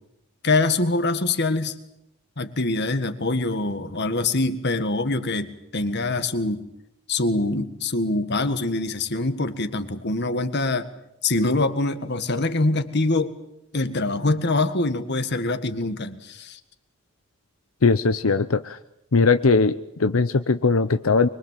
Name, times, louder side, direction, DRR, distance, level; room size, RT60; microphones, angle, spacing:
voice 1, 0.4-1.8 2.4-6.6 7.1-10.9 11.2-13.4 13.7-16.6, left 2 dB, 55° left, 10 dB, 1.8 m, -24 dB
voice 2, 17.8-18.8 19.1-21.3, left 4 dB, 80° left, 10 dB, 0.8 m, -20 dB
24.5 x 22.5 x 7.6 m, 0.85 s
head